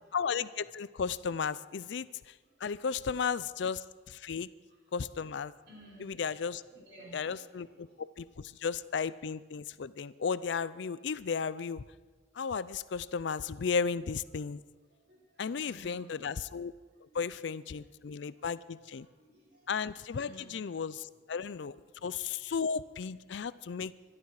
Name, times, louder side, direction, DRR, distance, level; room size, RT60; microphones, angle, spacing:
voice 1, 0.1-2.3 2.6-4.5 4.9-5.5 6.0-6.6 7.1-11.8 12.4-14.6 15.4-16.7 17.1-19.1 19.7-23.9, left 6 dB, 65° left, 17 dB, 0.4 m, -34 dB
voice 2, 5.6-6.2 6.7-8.0 13.6-13.7 14.9-16.2 17.1-17.2 17.7-19.7 20.2-20.6 21.9-22.1 23.7-24.2, right 1 dB, 60° right, -4 dB, 5.7 m, -57 dB
24.5 x 12.0 x 4.8 m, 1.4 s
head